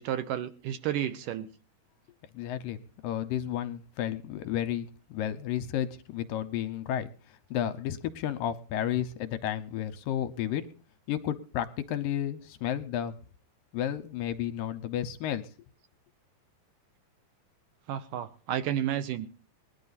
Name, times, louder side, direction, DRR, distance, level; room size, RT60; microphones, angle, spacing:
voice 1, 0.0-1.5 17.9-19.3, right 11 dB, 75° right, 11 dB, 2.2 m, -31 dB
voice 2, 2.3-7.1 7.5-10.7 11.1-13.1 13.7-15.5, left 10 dB, 75° left, 11 dB, 2.4 m, -32 dB
20.5 x 11.5 x 4.1 m, 0.37 s
omnidirectional pair, 4.3 m